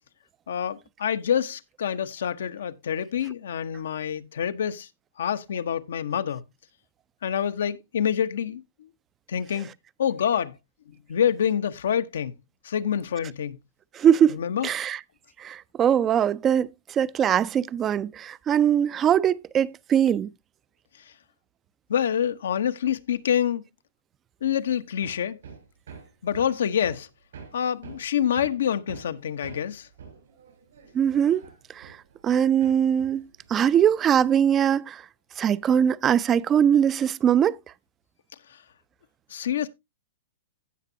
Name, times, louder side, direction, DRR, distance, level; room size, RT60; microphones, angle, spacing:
voice 1, 0.5-4.9 5.2-6.4 7.2-8.6 9.3-9.7 10.0-10.6 10.9-12.3 12.6-13.6 14.3-14.7 21.9-23.6 24.4-25.4 26.2-27.1 27.5-29.9 39.3-39.7, left 9 dB, 80° left, 0.9 m, -26 dB
voice 2, 14.0-14.4 14.6-15.0 15.4-16.7 17.0-20.3 30.9-31.5 31.8-31.9 32.2-33.2 33.5-35.0 35.4-37.6, right 9 dB, 25° right, 0.4 m, -21 dB
Hammer, 25.0-32.4 32.6-34.4, right 6 dB, 80° right, 6.3 m, -47 dB
16.0 x 6.0 x 2.7 m
hypercardioid pair, 130°, 0 cm